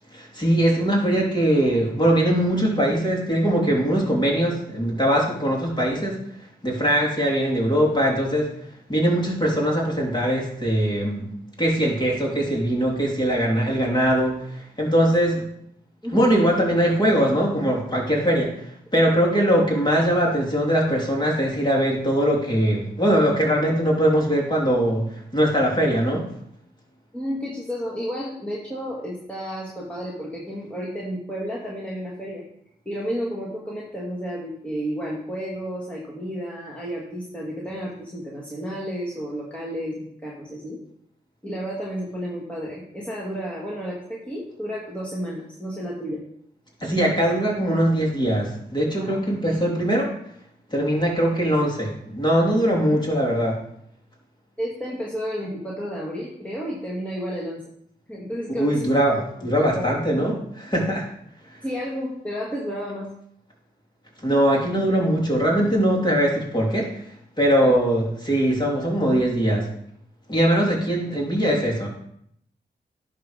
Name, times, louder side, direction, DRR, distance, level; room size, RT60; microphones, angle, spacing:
voice 1, 0.1-6.2 6.6-8.5 8.9-11.3 11.6-15.4 16.1-18.6 18.9-26.3 46.8-50.1 50.7-53.6 58.6-61.1 61.5-61.6 64.2-66.9 67.4-69.7 70.3-71.9, equal, 25° left, -3 dB, 3.3 m, -21 dB
voice 2, 27.1-32.4 32.9-40.8 41.4-46.2 49.0-49.2 54.6-57.6 58.1-58.9 59.4-59.9 61.6-63.1 67.6-67.8, equal, 5° left, -5 dB, 2.1 m, -31 dB
11.0 x 3.7 x 5.2 m, 0.72 s
cardioid pair, 40°, 19 cm